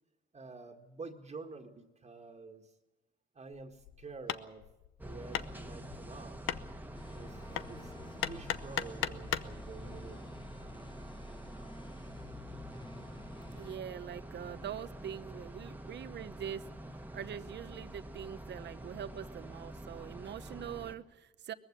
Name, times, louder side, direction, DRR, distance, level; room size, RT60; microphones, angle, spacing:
voice 1, 0.3-2.7 3.3-4.7 5.0-6.4 7.1-10.2, right 4 dB, 35° right, 3 dB, 1.8 m, -49 dB
Hammer, 3.5-9.6, left 11 dB, 85° left, 0.8 m, -39 dB
sound 1, 5.0-20.9, right 1 dB, 10° right, 1.5 m, -47 dB
sound 2, 6.9-13.8, left 4 dB, 25° left, 1.1 m, -53 dB
voice 2, 13.5-16.7 17.1-21.5, right 9 dB, 60° right, 13 dB, 1.0 m, -43 dB
20.5 x 15.0 x 9.9 m, 0.99 s
cardioid pair, 90°, 20 cm